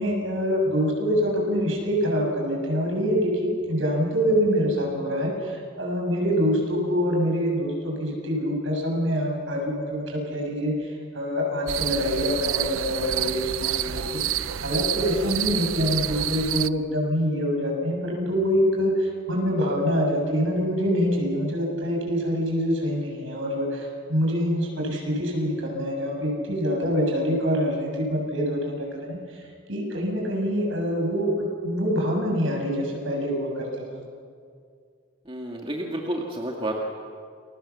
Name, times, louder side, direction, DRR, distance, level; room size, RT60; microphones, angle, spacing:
voice 1, 0.0-29.4 29.7-34.0, equal, 65° right, 0 dB, 7.1 m, -25 dB
sound 1, 11.7-16.7, right 11 dB, 85° right, 0.6 m, -28 dB
voice 2, 35.2-36.7, right 1 dB, 25° right, -1 dB, 2.1 m, -30 dB
29.0 x 22.5 x 7.2 m, 2.2 s
head